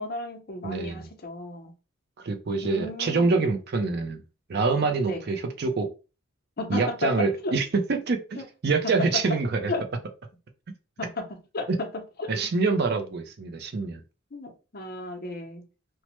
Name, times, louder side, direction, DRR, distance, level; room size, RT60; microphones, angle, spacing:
voice 1, 0.0-1.7 2.6-3.5 5.1-5.2 6.6-7.5 8.4-8.5 8.8-8.9 9.7-9.8 11.0-12.3 14.3-15.6, left 2 dB, 45° left, 0.6 m, -34 dB
voice 2, 0.6-1.1 2.2-4.2 4.5-5.9 6.7-9.7 12.3-14.0, right 4 dB, 50° right, 0.4 m, -26 dB
3.1 x 2.1 x 2.9 m
head